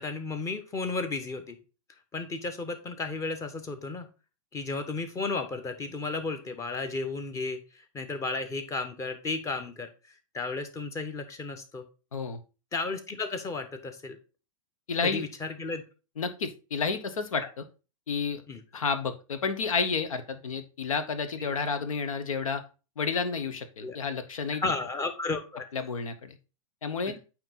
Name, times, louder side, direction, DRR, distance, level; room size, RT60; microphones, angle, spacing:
voice 1, 0.0-1.6 2.1-4.1 4.5-9.9 10.3-11.8 12.7-14.2 15.0-15.8 17.4-17.5 18.5-18.6 21.4-21.5 23.8-24.0 24.6-25.6 27.0-27.2, left 3 dB, 15° left, 8 dB, 1.0 m, -33 dB
voice 2, 14.9-15.2 16.2-17.6 18.1-18.4 18.7-22.6 23.0-24.6 25.7-26.4 26.8-27.2, left 5 dB, 70° left, 11 dB, 1.1 m, -30 dB
8.8 x 3.0 x 4.1 m, 0.33 s
figure-of-eight pair, 105°, 18 cm